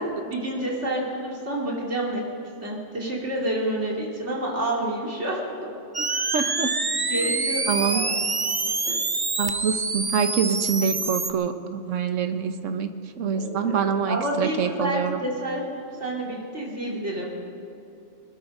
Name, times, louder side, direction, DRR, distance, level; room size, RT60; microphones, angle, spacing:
voice 1, 0.0-2.2 2.6-5.7 7.1-8.2 8.9-9.0 13.3-17.3, right 1 dB, 65° right, -3 dB, 3.2 m, -29 dB
sound 1, 5.9-11.3, right 3 dB, 25° right, 0.6 m, -26 dB
voice 2, 6.3-6.7 7.2-7.3 7.7-8.0 9.4-12.9 13.2-15.2, right 6 dB, 85° right, 9 dB, 1.3 m, -25 dB
21.0 x 13.0 x 5.3 m, 2.8 s
omnidirectional pair, 1.3 m